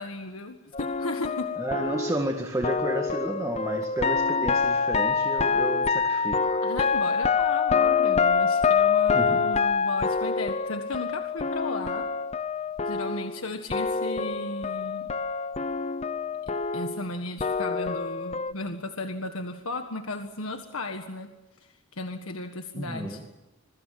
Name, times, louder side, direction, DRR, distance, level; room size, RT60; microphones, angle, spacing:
voice 1, 0.0-1.6 6.6-12.1 12.9-15.1 16.7-21.3 21.6-23.2, left 2 dB, 80° left, 6 dB, 1.7 m, -35 dB
sound 1, 0.7-13.4 13.7-18.5, left 5 dB, 30° left, 0.8 m, -26 dB
voice 2, 1.6-6.6 9.1-9.4 22.7-23.2, right 1 dB, 15° right, 3 dB, 1.9 m, -31 dB
26.5 x 23.0 x 7.5 m, 1.1 s
head